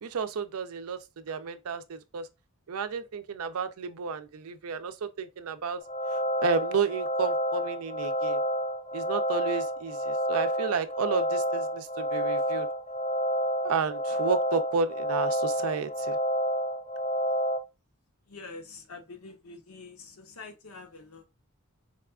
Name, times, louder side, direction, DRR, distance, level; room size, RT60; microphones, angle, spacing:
voice 1, 0.0-2.3 2.7-5.8 6.1-8.4 8.9-12.7 13.6-16.2, right 5 dB, 85° right, 0.5 m, -32 dB
sound 1, 5.8-17.6, equal, 30° left, 0.4 m, -29 dB
voice 2, 18.3-21.2, left 3 dB, 85° left, 0.8 m, -46 dB
4.1 x 2.3 x 2.2 m
head